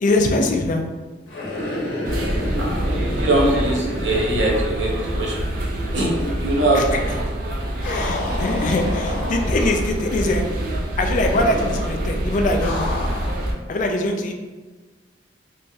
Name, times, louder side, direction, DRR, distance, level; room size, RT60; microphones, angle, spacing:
voice 1, 0.0-0.8 6.7-6.8 7.8-10.4 11.0-12.9 13.7-14.3, left 2 dB, 45° left, 4 dB, 0.3 m, -22 dB
sound 1, 1.3-5.4 5.7-5.8 7.8-9.8 11.2-11.9 12.6-13.4, left 1 dB, 85° left, 0.7 m, -29 dB
sound 2, 2.0-13.5, right 1 dB, 50° right, 0.4 m, -26 dB
voice 2, 3.1-5.3 5.9-7.0, right 1 dB, 85° right, -3 dB, 0.7 m, -22 dB
3.0 x 2.7 x 2.3 m, 1.3 s
head